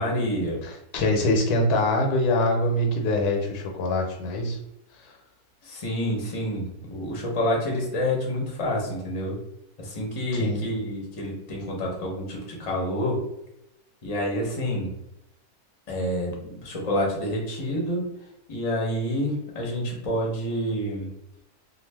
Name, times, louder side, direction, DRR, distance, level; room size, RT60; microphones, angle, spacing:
voice 1, 0.0-0.6 5.6-9.4 9.8-13.2 14.0-14.9 15.9-18.0 18.5-21.1, equal, 30° left, -1 dB, 0.6 m, -28 dB
voice 2, 0.6-4.6 5.0-5.1 10.4-10.6, left 1 dB, 90° left, 2 dB, 1.2 m, -24 dB
2.4 x 2.4 x 3.3 m, 0.83 s
omnidirectional pair, 1.6 m